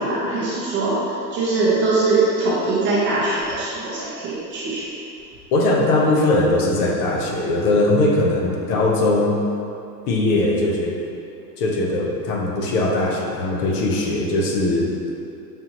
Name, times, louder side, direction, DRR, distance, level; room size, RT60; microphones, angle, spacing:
voice 1, 0.0-4.9, right 3 dB, 25° right, -7 dB, 0.6 m, -22 dB
voice 2, 5.5-9.4 10.1-10.9 11.6-14.9, left 2 dB, 60° left, 0 dB, 0.8 m, -20 dB
5.5 x 2.5 x 2.9 m, 2.7 s
hypercardioid pair, 130°, 50 cm